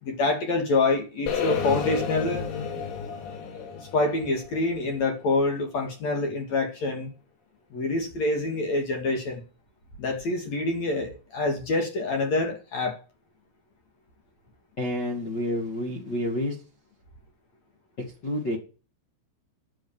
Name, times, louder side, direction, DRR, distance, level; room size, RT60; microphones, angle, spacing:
voice 1, 0.0-2.4 3.5-7.1 7.7-9.4 10.0-13.0, left 2 dB, 45° left, 4 dB, 2.8 m, -26 dB
sound 1, 1.3-5.3, left 7 dB, 80° left, 5.5 m, -31 dB
voice 2, 14.8-16.6 18.2-18.6, left 1 dB, 60° left, 0 dB, 1.1 m, -29 dB
10.5 x 9.3 x 7.3 m, 0.35 s
omnidirectional pair, 5.9 m